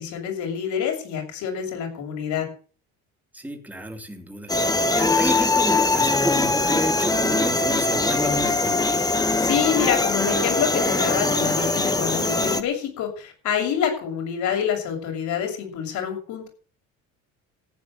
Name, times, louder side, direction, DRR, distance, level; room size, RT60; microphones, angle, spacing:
voice 1, 0.0-2.5 9.4-16.5, left 8 dB, 60° left, 3 dB, 7.1 m, -27 dB
voice 2, 3.3-4.5 4.9-9.0, equal, 5° right, 4 dB, 2.9 m, -30 dB
sound 1, 4.5-12.6, left 3 dB, 10° left, 1.4 m, -22 dB
15.0 x 9.4 x 7.6 m, 0.41 s
cardioid pair, 140°, 33 cm